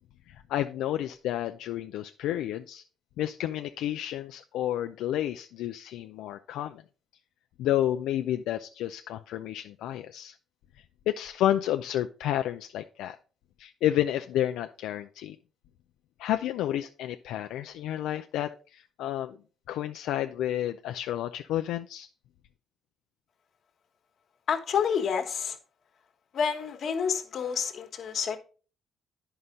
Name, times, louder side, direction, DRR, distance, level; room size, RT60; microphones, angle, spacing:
voice 1, 0.3-2.8 3.2-6.8 7.6-10.3 11.1-13.2 13.6-15.4 16.2-19.4 19.7-22.1, left 12 dB, 90° left, 7 dB, 0.3 m, -30 dB
voice 2, 24.5-25.6 26.3-28.4, left 7 dB, 60° left, 6 dB, 1.3 m, -29 dB
9.5 x 5.6 x 3.7 m, 0.37 s
cardioid pair, 90°, 0 cm